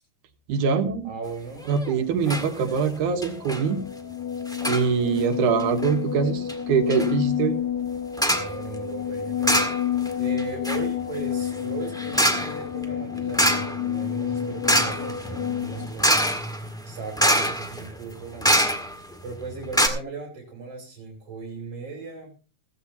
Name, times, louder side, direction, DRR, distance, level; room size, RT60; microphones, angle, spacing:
voice 1, 0.5-1.1 1.7-3.8 4.7-7.6, right 6 dB, 90° right, 7 dB, 2.8 m, -23 dB
voice 2, 1.0-1.6 8.3-9.7 10.2-16.3 16.8-18.6 19.2-22.4, right 4 dB, 50° right, 2 dB, 3.6 m, -37 dB
sound 1, 1.6-1.9 2.3-2.5 2.8-2.9 3.2-3.6 4.5-4.9 5.6-5.9 6.5-6.6 6.9-7.1 8.2-8.5 9.4-10.1 10.4-19.1 19.4-19.5 19.7-19.9, equal, ahead, 0.9 m, -25 dB
sound 2, 2.5-15.9, left 9 dB, 50° left, 1.1 m, -29 dB
15.5 x 15.5 x 2.9 m, 0.35 s
omnidirectional pair, 3.4 m